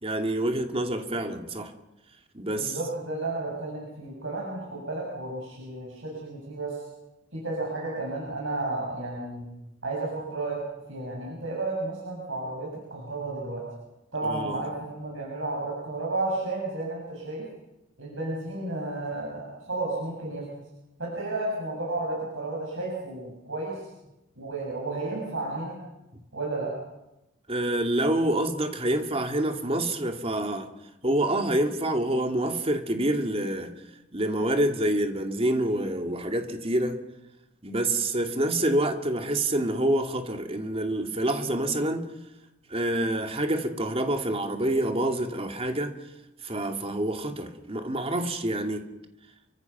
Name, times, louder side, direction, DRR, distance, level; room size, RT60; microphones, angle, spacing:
voice 1, 0.0-1.7 2.3-2.8 14.3-14.6 27.5-30.7 31.0-33.7 34.1-37.0 37.6-42.0 42.7-45.9 46.4-48.8, right 1 dB, 30° right, 5 dB, 2.6 m, -27 dB
voice 2, 2.5-6.8 7.3-9.5 9.8-10.6 10.9-13.7 14.1-17.4 18.0-20.5 21.0-23.8 24.4-25.8 26.3-26.7, right 2 dB, 75° right, -3 dB, 7.8 m, -32 dB
30.0 x 24.5 x 6.0 m, 0.94 s
head